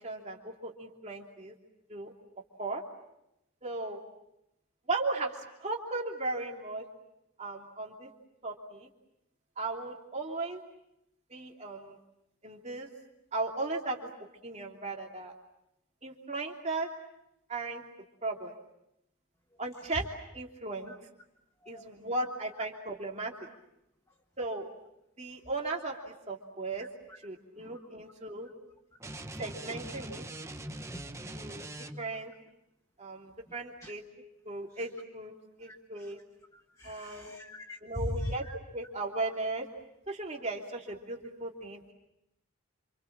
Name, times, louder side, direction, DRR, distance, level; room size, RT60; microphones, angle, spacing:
voice 1, 0.0-1.5 1.9-2.1 2.6-2.8 3.6-4.0 4.9-6.8 7.4-8.1 8.4-8.9 9.6-10.6 11.3-12.0 12.4-12.9 13.3-14.1 14.4-15.3 16.0-16.9 17.5-17.8 18.2-18.5 19.6-20.0 20.3-20.9 21.7-23.3 24.4-24.7 25.2-26.9 27.2-28.5 29.4-30.2 31.3-31.7 32.0-32.3 33.0-34.0 34.4-35.3 35.6-36.2 36.8-37.4 37.8-38.4 38.7-39.7 40.1-41.9, right 2 dB, 30° right, 0 dB, 3.0 m, -36 dB
sound 1, 29.0-32.2, right 1 dB, 15° right, 1.1 m, -42 dB
voice 2, 29.1-29.8 30.9-31.9 33.8-33.9 35.6-36.1 36.5-38.6, left 1 dB, 15° left, 4 dB, 1.4 m, -42 dB
28.0 x 27.5 x 7.4 m, 0.85 s
head